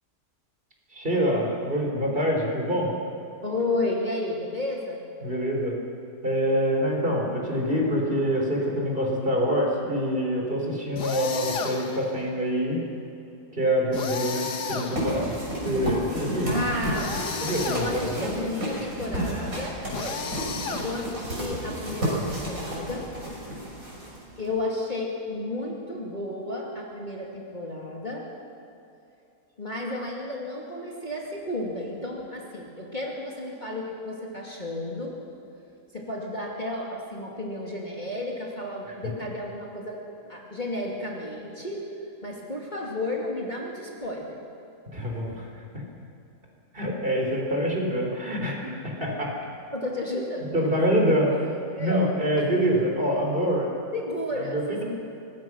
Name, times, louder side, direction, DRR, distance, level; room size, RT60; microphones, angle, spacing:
voice 1, 0.9-2.9 5.2-5.7 6.2-12.8 13.6-15.3 15.6-16.5 17.4-18.3 44.9-45.5 46.7-49.3 50.5-51.5 51.8-53.7 54.5-54.8, equal, 35° right, -1 dB, 4.2 m, -25 dB
voice 2, 3.4-5.0 16.5-17.3 17.7-20.2 20.8-23.1 24.4-28.2 29.6-35.2 35.9-41.8 42.2-44.4 49.7-50.7 51.7-52.0 52.4-52.8 53.9-54.8, left 2 dB, 25° left, -2 dB, 2.6 m, -32 dB
sound 1, 11.0-12.1 13.9-15.4 16.9-18.2 19.9-21.3, left 5 dB, 85° left, 2.0 m, -33 dB
sound 2, 15.0-24.5, equal, 55° right, 7.2 m, -32 dB
25.0 x 20.0 x 6.3 m, 2.8 s
omnidirectional pair, 1.7 m